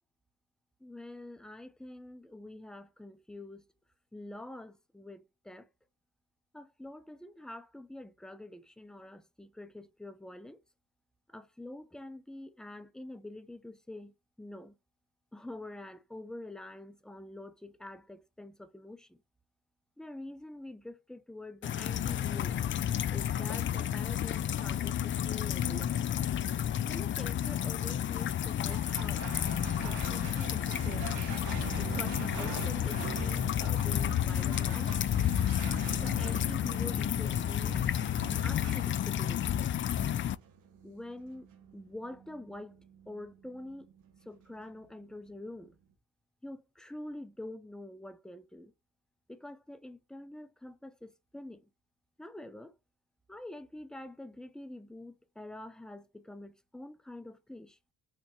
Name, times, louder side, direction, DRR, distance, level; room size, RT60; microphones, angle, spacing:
voice 1, 0.8-3.6 4.1-5.7 6.5-10.6 11.3-14.8 15.3-19.2 20.0-22.6 23.1-26.2 26.9-29.3 29.8-31.1 31.8-35.1 36.0-37.8 38.4-39.4 40.8-41.5 41.7-42.8 43.1-43.9 44.2-45.8 46.4-48.7 49.3-51.7 52.2-52.7 53.3-57.8, left 1 dB, ahead, 0.6 m, -46 dB
sound 1, 21.6-40.4, left 10 dB, 40° left, 0.4 m, -31 dB
sound 2, 28.7-45.4, right 7 dB, 90° right, 1.3 m, -44 dB
4.4 x 3.5 x 3.2 m
cardioid pair, 90°, 30 cm